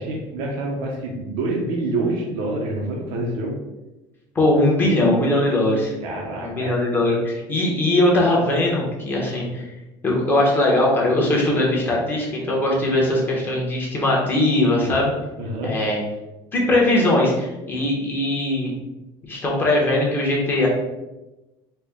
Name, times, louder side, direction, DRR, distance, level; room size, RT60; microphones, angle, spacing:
voice 1, 0.0-3.6 6.0-6.8 15.4-15.8, right 2 dB, 70° right, -2 dB, 0.7 m, -27 dB
voice 2, 4.3-5.9 6.4-9.6 10.0-15.1 15.6-16.0 16.5-18.8 19.2-20.7, left 1 dB, 20° left, -3 dB, 1.0 m, -20 dB
4.2 x 2.2 x 3.5 m, 1.0 s
cardioid pair, 150°, 11 cm